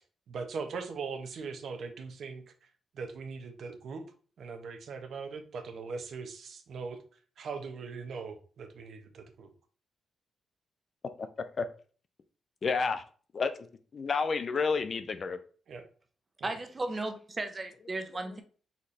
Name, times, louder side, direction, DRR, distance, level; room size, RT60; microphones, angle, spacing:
voice 1, 0.3-2.7 2.9-4.1 4.4-7.0 7.4-9.5 15.7-15.9 16.4-16.5, right 5 dB, 60° right, 0.7 m, -40 dB
voice 2, 11.2-11.7 12.6-13.0 13.3-13.7 13.9-15.4, left 5 dB, 40° left, 0.4 m, -30 dB
voice 3, 16.4-18.4, right 2 dB, 25° right, 0.6 m, -35 dB
4.2 x 4.0 x 3.1 m
wide cardioid pair, 150°, 0 cm